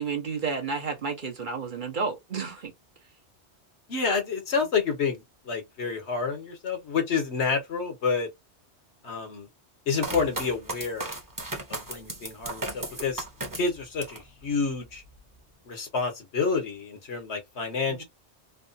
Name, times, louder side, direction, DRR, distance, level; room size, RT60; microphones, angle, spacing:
voice 1, 0.0-2.7 17.9-18.0, right 5 dB, 50° right, 0.9 m, -31 dB
voice 2, 3.9-8.3 9.0-9.5 9.9-11.1 11.7-13.2 13.6-15.0 15.7-18.0, left 5 dB, 70° left, 1.4 m, -29 dB
sound 1, 10.0-14.3 14.7-15.4, right 2 dB, 20° right, 0.9 m, -36 dB
3.2 x 2.3 x 2.6 m
omnidirectional pair, 1.2 m